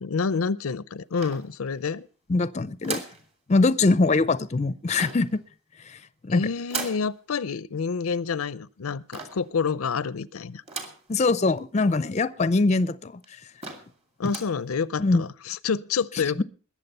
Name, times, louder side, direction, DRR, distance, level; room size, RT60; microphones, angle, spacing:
voice 1, 0.0-2.1 6.3-10.6 14.2-16.4, left 5 dB, 85° left, 19 dB, 0.6 m, -28 dB
sound 1, 1.2-1.9 2.8-3.3 4.9-5.4 6.7-7.1 9.1-9.5 10.7-11.1 11.6-11.7 11.9-12.0 12.7-12.8 13.2-13.3 13.6-14.0 14.2-14.6, right 4 dB, 30° right, 2.5 m, -36 dB
voice 2, 2.3-3.0 3.5-5.4 5.9-6.5 11.1-13.2 15.0-15.2 16.4-16.5, left 3 dB, 35° left, 16 dB, 0.5 m, -23 dB
21.0 x 7.4 x 5.5 m, 0.39 s
head